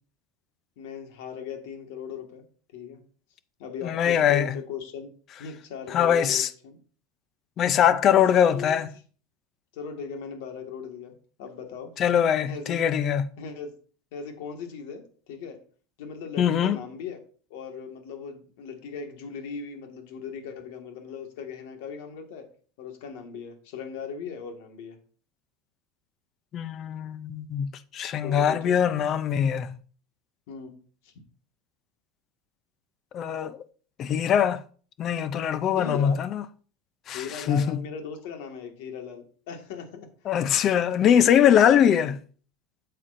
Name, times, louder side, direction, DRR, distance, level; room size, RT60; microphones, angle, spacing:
voice 1, 0.8-2.4 2.7-3.0 3.6-5.1 5.4-6.8 8.1-8.8 9.7-11.9 12.4-12.8 13.4-13.7 14.1-15.6 16.0-17.2 17.5-22.5 22.8-25.0 28.2-28.7 30.5-30.8 31.0-31.1 35.8-36.2 37.1-40.1 41.9-42.1, left 6 dB, 65° left, 1.7 m, -38 dB
voice 2, 3.8-4.5 5.9-6.5 7.6-8.9 12.0-13.2 16.4-16.8 26.5-29.7 33.1-33.6 34.0-34.6 35.0-36.4 37.1-37.8 40.3-42.2, left 9 dB, 30° left, 0.5 m, -22 dB
8.4 x 7.5 x 2.6 m
supercardioid pair, 170°, 0 cm